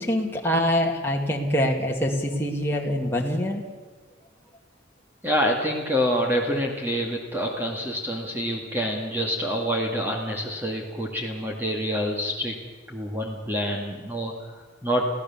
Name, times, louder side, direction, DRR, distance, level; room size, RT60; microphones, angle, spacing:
voice 1, 0.0-3.6, equal, 10° left, -1 dB, 2.1 m, -24 dB
voice 2, 5.2-12.5 12.9-15.1, equal, 10° right, 0 dB, 2.1 m, -27 dB
23.5 x 16.0 x 7.3 m, 1.4 s
head